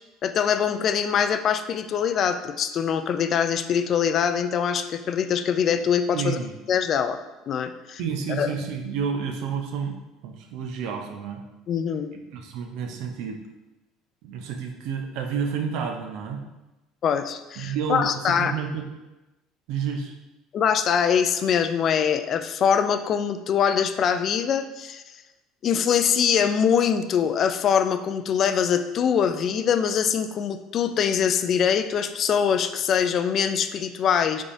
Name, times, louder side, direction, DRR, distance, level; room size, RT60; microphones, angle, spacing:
voice 1, 0.2-6.4 6.7-7.2 7.5-8.0 8.4-8.5 11.7-12.1 17.0-18.5 20.5-25.0 25.6-34.4, left 7 dB, 50° left, 10 dB, 0.3 m, -23 dB
voice 2, 6.1-6.5 8.0-11.4 12.3-13.4 14.2-16.4 17.6-18.9 19.7-20.1, right 6 dB, 70° right, 4 dB, 0.6 m, -30 dB
4.8 x 3.6 x 2.6 m, 1.0 s
supercardioid pair, 80°, 0 cm